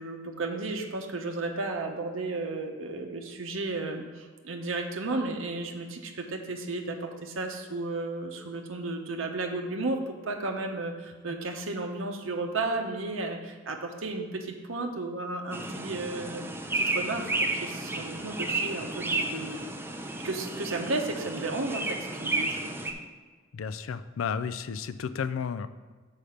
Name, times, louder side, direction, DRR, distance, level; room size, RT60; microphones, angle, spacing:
voice 1, 0.0-16.5 16.7-19.7 20.2-22.6, right 2 dB, 80° right, 3 dB, 0.9 m, -33 dB
sound 1, 15.5-22.9, right 2 dB, 10° right, 0.6 m, -32 dB
voice 2, 23.5-25.7, left 6 dB, 90° left, 13 dB, 0.4 m, -32 dB
6.6 x 4.9 x 5.7 m, 1.4 s
head